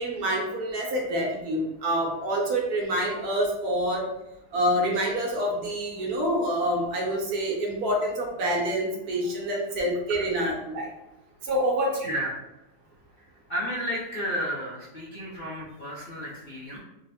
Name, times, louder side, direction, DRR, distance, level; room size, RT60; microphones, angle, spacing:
voice 1, 0.0-4.0 4.5-10.9 11.4-12.1, equal, 70° right, -1 dB, 1.3 m, -27 dB
voice 2, 13.5-16.8, equal, 50° left, -6 dB, 0.7 m, -32 dB
3.8 x 2.1 x 4.1 m, 0.93 s
omnidirectional pair, 1.7 m